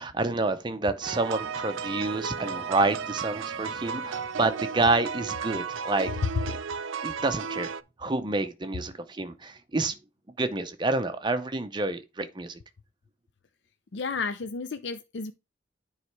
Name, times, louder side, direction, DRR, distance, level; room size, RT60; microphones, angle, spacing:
voice 1, 0.0-6.6 7.0-7.7 8.0-9.9 10.4-12.6, right 2 dB, 25° right, 0.6 m, -28 dB
sound 1, 1.0-7.8, right 6 dB, 85° right, 0.4 m, -34 dB
voice 2, 13.9-15.3, left 4 dB, 65° left, 0.5 m, -32 dB
9.5 x 3.2 x 4.6 m
head